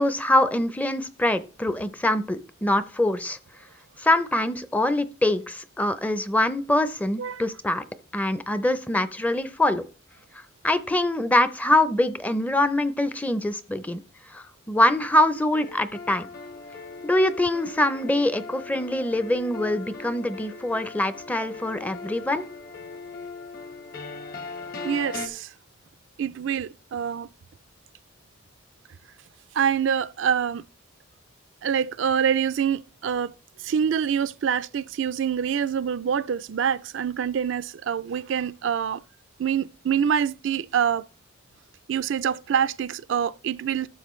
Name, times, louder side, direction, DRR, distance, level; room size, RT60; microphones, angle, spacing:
voice 1, 0.0-3.4 4.0-7.8 8.1-9.8 10.6-14.0 14.3-16.3 17.0-22.4, left 1 dB, 10° left, 0.5 m, -24 dB
sound 1, 15.5-25.3, left 4 dB, 50° left, 1.5 m, -39 dB
voice 2, 24.8-25.5 26.2-27.3 29.5-30.6 31.6-33.3 33.6-39.0 39.4-41.1 41.9-43.9, right 8 dB, 70° right, 0.4 m, -25 dB
12.0 x 7.3 x 3.1 m
head